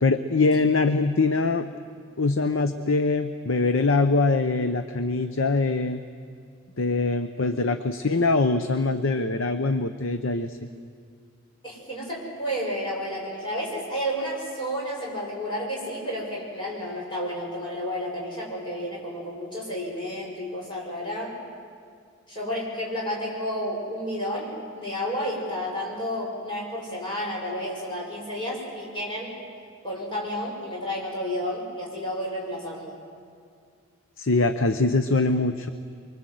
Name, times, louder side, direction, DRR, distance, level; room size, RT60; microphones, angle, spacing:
voice 1, 0.0-1.7 2.2-6.0 6.8-10.6 34.2-35.7, left 3 dB, 65° left, 9 dB, 0.8 m, -23 dB
voice 2, 11.6-21.3 22.3-29.3 29.8-33.0, equal, 20° left, -4 dB, 6.4 m, -31 dB
24.0 x 24.0 x 7.8 m, 2.2 s
head